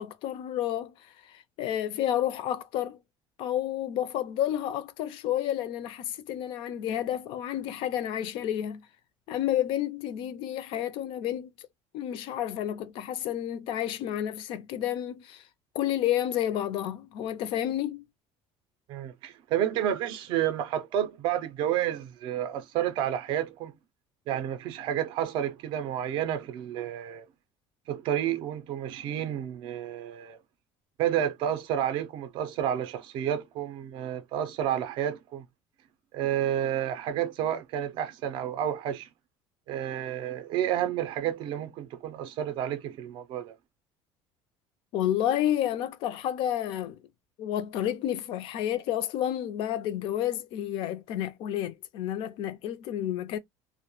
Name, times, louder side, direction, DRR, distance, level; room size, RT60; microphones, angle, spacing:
voice 1, 0.0-3.0 3.4-8.8 9.3-11.7 11.9-15.4 15.7-18.0 44.9-47.0 47.4-53.4, left 11 dB, 50° left, 0.4 m, -30 dB
voice 2, 18.9-23.7 24.3-27.3 27.9-30.4 31.0-35.4 36.1-39.1 39.7-43.5, right 10 dB, 45° right, 0.4 m, -30 dB
2.2 x 2.1 x 2.9 m
cardioid pair, 175°, 11 cm